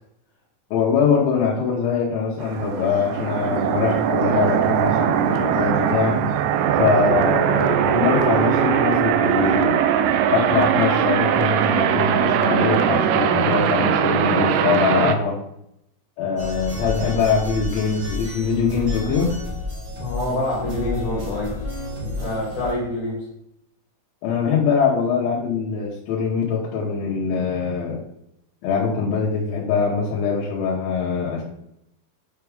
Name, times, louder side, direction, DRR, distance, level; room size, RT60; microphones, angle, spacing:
voice 1, 0.7-6.2 6.8-9.8 10.3-15.4 16.2-19.3 24.2-28.0 28.6-31.4, left 6 dB, 85° left, -4 dB, 3.5 m, -22 dB
sound 1, 2.4-15.2, right 9 dB, 85° right, 2.3 m, -20 dB
sound 2, 16.4-22.7, left 1 dB, 35° right, 2.3 m, -31 dB
voice 2, 20.0-21.6 22.0-23.2, left 1 dB, 60° left, -4 dB, 3.7 m, -26 dB
8.3 x 4.7 x 3.5 m, 0.76 s
omnidirectional pair, 5.2 m